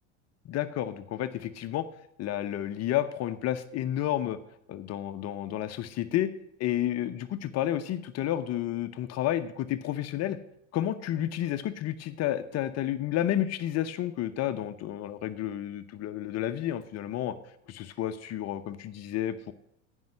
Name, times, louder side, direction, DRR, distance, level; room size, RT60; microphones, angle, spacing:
voice 1, 0.5-1.9 2.2-4.4 4.7-6.3 6.6-10.4 10.7-17.4 17.7-19.5, left 12 dB, 45° left, 10 dB, 0.9 m, -31 dB
15.0 x 5.6 x 7.9 m, 0.75 s
hypercardioid pair, 75°, 36 cm